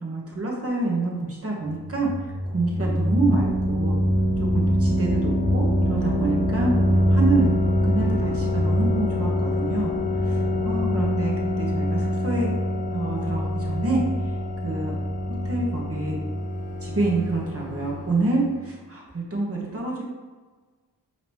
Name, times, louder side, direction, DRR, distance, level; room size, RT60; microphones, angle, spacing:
voice 1, 0.0-2.1 2.5-4.0 4.5-6.7 7.1-7.5 7.8-9.9 10.2-12.5 12.9-14.0 14.6-15.0 15.4-16.2 16.8-20.0, right 2 dB, 35° right, -2 dB, 1.3 m, -27 dB
sound 1, 1.7-18.4, equal, 20° left, 0.7 m, -24 dB
5.0 x 3.1 x 3.0 m, 1.3 s
cardioid pair, 50°, 42 cm